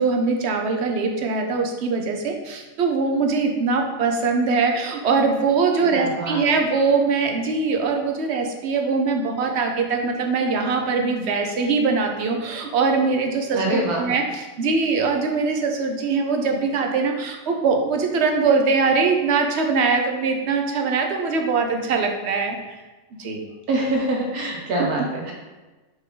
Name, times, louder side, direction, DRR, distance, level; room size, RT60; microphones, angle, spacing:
voice 1, 0.0-22.8 23.2-23.5 24.8-25.1, right 4 dB, 55° right, 3 dB, 1.0 m, -22 dB
voice 2, 5.8-6.4 13.5-14.1 23.7-25.3, right 1 dB, 85° right, -1 dB, 1.7 m, -25 dB
6.1 x 4.6 x 3.9 m, 1.2 s
omnidirectional pair, 1.6 m